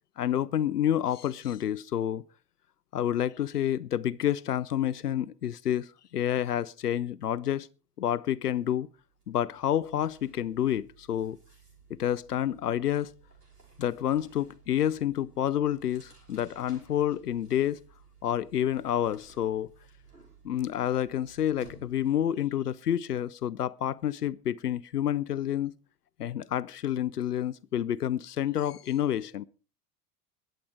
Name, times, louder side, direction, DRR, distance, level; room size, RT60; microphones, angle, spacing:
voice 1, 0.2-2.2 2.9-7.7 8.0-8.9 9.3-11.4 12.0-13.1 13.8-17.8 18.2-19.7 20.4-25.7 26.2-29.4, left 11 dB, 85° left, 0.6 m, -29 dB
sound 1, 8.5-8.6 8.9-22.4, right 4 dB, 90° right, 5.7 m, -57 dB
21.5 x 7.7 x 4.8 m
figure-of-eight pair, 80°, 46 cm